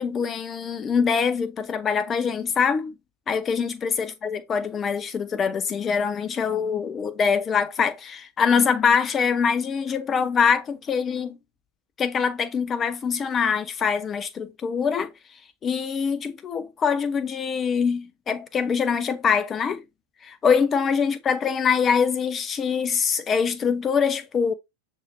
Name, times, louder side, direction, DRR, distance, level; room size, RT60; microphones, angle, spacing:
voice 1, 0.0-2.9 3.3-11.4 12.0-15.1 15.6-19.8 20.2-24.5, left 6 dB, 25° left, 0.7 m, -24 dB
6.4 x 2.8 x 2.6 m
figure-of-eight pair, 90°, 0 cm